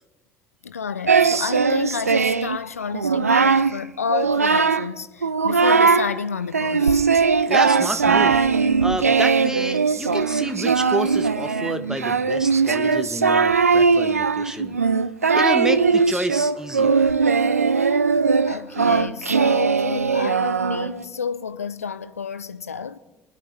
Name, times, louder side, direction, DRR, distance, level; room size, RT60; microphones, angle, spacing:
voice 1, 0.6-7.0 18.4-23.0, left 6 dB, 85° left, 0.5 m, -30 dB
Singing, 1.1-2.6 2.9-3.7 4.1-4.9 5.2-6.1 6.5-21.0, right 5 dB, 90° right, 0.4 m, -19 dB
voice 2, 7.5-8.5 8.8-14.8 15.3-17.1, right 1 dB, 10° right, 1.3 m, -29 dB
24.5 x 11.0 x 3.3 m
figure-of-eight pair, 55°, 8 cm